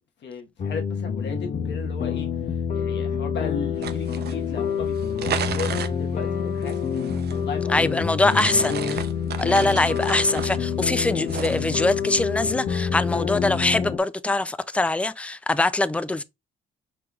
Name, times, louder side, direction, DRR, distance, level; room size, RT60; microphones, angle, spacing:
voice 1, 0.2-8.4 9.5-9.9, left 5 dB, 65° left, 1.2 m, -36 dB
sound 1, 0.6-14.0, left 7 dB, 40° left, 0.7 m, -27 dB
sound 2, 3.7-11.9, right 8 dB, 55° right, 0.6 m, -35 dB
voice 2, 7.7-9.0 9.4-16.2, left 2 dB, 5° left, 0.3 m, -23 dB
5.9 x 3.2 x 2.3 m
cardioid pair, 90°, 20 cm